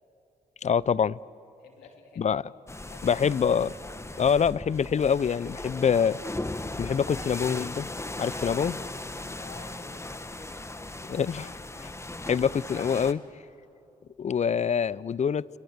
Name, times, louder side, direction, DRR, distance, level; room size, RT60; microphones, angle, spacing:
voice 1, 0.6-1.2 2.2-2.4 3.0-3.7 4.2-6.2 6.8-7.9 8.2-8.8 11.1-11.5 11.8-11.9 12.2-13.2 14.2-15.4, left 7 dB, 45° left, 0.6 m, -25 dB
voice 2, 1.6-2.4 2.8-3.2 9.4-10.3, left 5 dB, 90° left, 3.0 m, -50 dB
sound 1, 2.7-13.1, left 2 dB, 15° left, 1.5 m, -38 dB
29.5 x 29.5 x 6.6 m
supercardioid pair, 50°, 16 cm